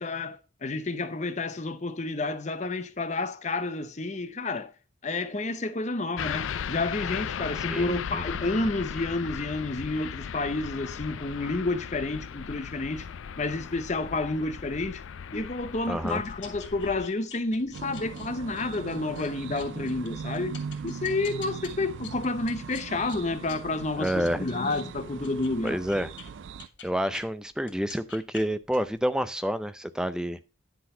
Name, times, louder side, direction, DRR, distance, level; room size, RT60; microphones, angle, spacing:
voice 1, 0.0-4.7 5.0-13.1 13.4-15.0 15.3-20.6 20.8-25.8, left 2 dB, 35° left, 0.7 m, -30 dB
sound 1, 6.2-17.1, left 7 dB, 85° left, 0.4 m, -37 dB
voice 2, 7.7-8.2 15.9-16.2 24.0-24.5 25.6-26.1 26.8-30.4, equal, 5° right, 0.5 m, -29 dB
sound 2, 15.3-27.2 27.6-29.0, left 6 dB, 65° left, 2.9 m, -48 dB
sound 3, 17.7-26.7, right 6 dB, 70° right, 0.4 m, -39 dB
10.5 x 4.0 x 5.5 m
head